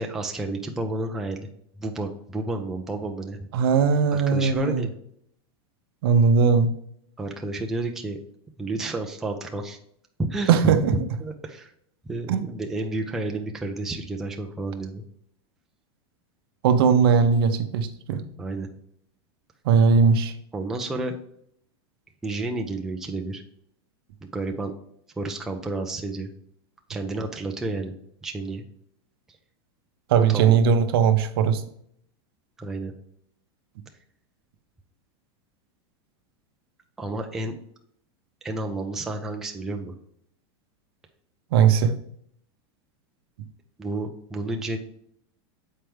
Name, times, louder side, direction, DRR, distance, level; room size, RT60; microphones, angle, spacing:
voice 1, 0.0-1.5 1.8-3.4 4.1-4.9 7.2-8.2 8.6-9.8 10.2-10.7 11.2-11.7 12.0-15.0 18.4-18.7 20.5-21.2 22.2-23.4 24.3-24.8 25.2-26.3 26.9-27.9 28.2-28.6 30.3-30.6 32.6-32.9 37.0-37.6 38.4-39.9 43.8-44.8, right 2 dB, 5° right, 3 dB, 0.3 m, -31 dB
voice 2, 3.5-4.8 6.0-6.7 10.5-10.9 12.3-12.4 16.6-18.2 19.6-20.3 30.1-31.6 41.5-42.0, right 6 dB, 55° right, 8 dB, 0.7 m, -19 dB
7.5 x 4.4 x 3.4 m, 0.68 s
supercardioid pair, 175°, 14 cm